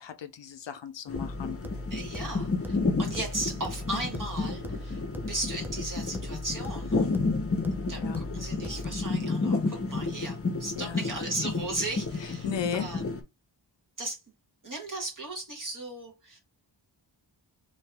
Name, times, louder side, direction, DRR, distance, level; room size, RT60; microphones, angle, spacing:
voice 1, 0.0-1.6 7.9-8.2 10.8-11.0 12.2-12.9, left 7 dB, 70° left, 0.5 m, -36 dB
sound 1, 1.1-13.2, left 3 dB, 30° left, 0.7 m, -31 dB
sound 2, 1.1-9.1, left 1 dB, 5° right, 0.4 m, -40 dB
voice 2, 1.9-7.1 7.9-12.5 12.7-13.0 14.0-14.2 14.6-16.4, right 2 dB, 45° right, 1.4 m, -36 dB
2.8 x 2.7 x 3.3 m
wide cardioid pair, 85°, 46 cm